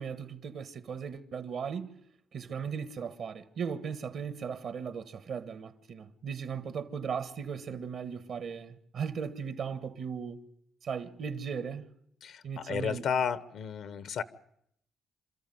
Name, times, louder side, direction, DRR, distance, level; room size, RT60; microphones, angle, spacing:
voice 1, 0.0-2.0 2.3-10.5 10.8-11.9 12.4-13.0, right 6 dB, 65° right, 1.4 m, -37 dB
voice 2, 12.2-14.2, left 7 dB, 70° left, 1.1 m, -32 dB
28.0 x 13.5 x 9.3 m
cardioid pair, 90°, 0 cm